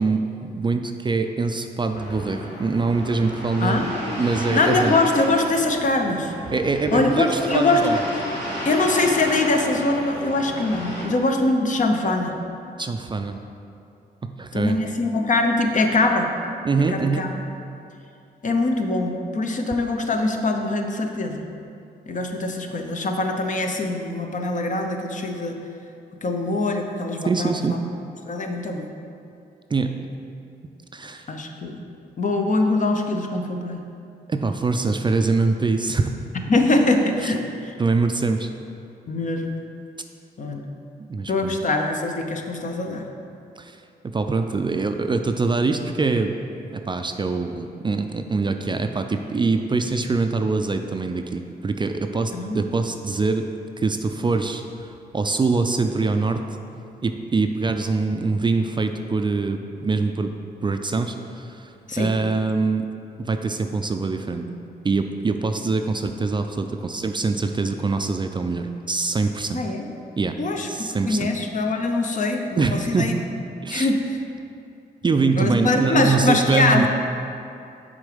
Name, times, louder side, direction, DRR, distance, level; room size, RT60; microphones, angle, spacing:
voice 1, 0.0-3.9 4.1-4.9 6.5-8.0 12.8-13.4 14.2-14.8 16.6-17.2 27.3-27.8 29.7-29.9 30.9-31.3 34.3-36.1 37.2-37.3 37.8-38.5 41.0-41.6 43.6-43.8 44.0-46.3 46.7-53.5 53.8-56.4 57.0-60.3 60.6-62.9 63.2-64.5 64.8-69.6 70.2-70.3 70.7-71.3 72.6-73.2 73.6-73.9 75.0-76.9, right 4 dB, 25° right, 6 dB, 0.4 m, -24 dB
sound 1, 1.9-11.0, equal, 85° left, 1.5 m, -33 dB
voice 2, 3.6-4.2 4.5-6.3 6.9-8.0 8.6-12.4 14.5-16.3 16.9-17.3 18.4-21.4 22.1-25.6 26.2-27.8 28.3-28.9 31.3-31.8 32.2-33.8 36.5-37.7 39.1-39.6 40.4-40.7 41.3-43.0 52.3-52.6 61.9-62.1 69.5-69.9 70.4-73.1 73.7-74.2 75.4-76.9, left 2 dB, 45° left, 4 dB, 0.7 m, -23 dB
6.2 x 3.9 x 5.0 m, 2.6 s
cardioid pair, 65°, 18 cm